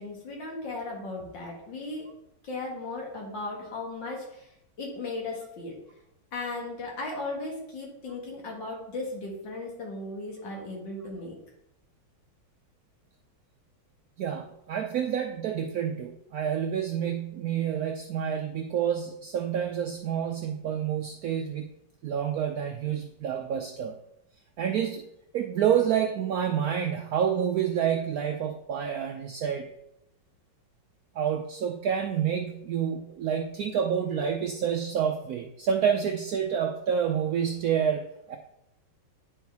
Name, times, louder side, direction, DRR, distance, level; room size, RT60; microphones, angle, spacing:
voice 1, 0.0-2.1 2.4-5.8 6.3-11.4, left 2 dB, 70° left, -1 dB, 2.2 m, -36 dB
voice 2, 14.2-21.7 22.0-24.0 24.6-25.0 25.3-29.7 31.2-38.4, right 8 dB, 80° right, 4 dB, 0.8 m, -28 dB
9.7 x 4.6 x 3.5 m, 0.80 s
omnidirectional pair, 2.1 m